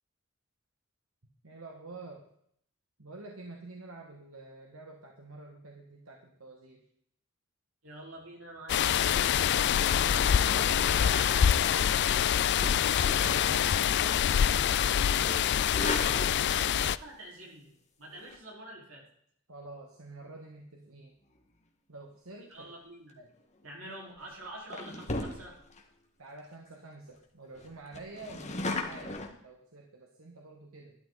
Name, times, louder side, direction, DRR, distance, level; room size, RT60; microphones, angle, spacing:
voice 1, 1.4-2.2 3.0-6.8 19.5-21.1 21.9-22.8 23.2-23.3 26.2-30.9, right 2 dB, 90° right, 1 dB, 1.9 m, -48 dB
voice 2, 7.8-9.5 10.1-15.7 15.9-17.7 18.0-19.0 22.5-23.2 23.6-25.5, right 1 dB, 70° right, -2 dB, 4.9 m, -46 dB
sound 1, 8.7-17.0, left 9 dB, 55° left, 0.4 m, -25 dB
sound 2, 12.5-14.2 14.5-14.8 15.4-16.8 18.1-18.4 23.4-23.7 24.2-24.3 24.7-25.8 26.3-26.4 26.7-26.8 27.1-27.2 27.5-29.3, left 2 dB, 35° left, 1.9 m, -37 dB
13.0 x 11.5 x 4.2 m, 0.69 s
head